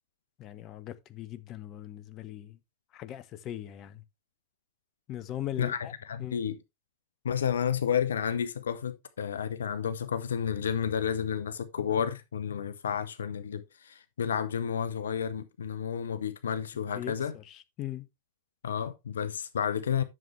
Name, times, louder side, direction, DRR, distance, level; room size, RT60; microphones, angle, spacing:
voice 1, 0.4-2.6 2.9-4.0 5.1-5.9 6.2-6.4 16.9-18.1, left 12 dB, 35° left, 1.0 m, -40 dB
voice 2, 5.6-6.6 7.2-17.3 18.6-20.0, left 8 dB, 65° left, 0.8 m, -31 dB
11.0 x 6.9 x 3.3 m
figure-of-eight pair, 90°, 0 cm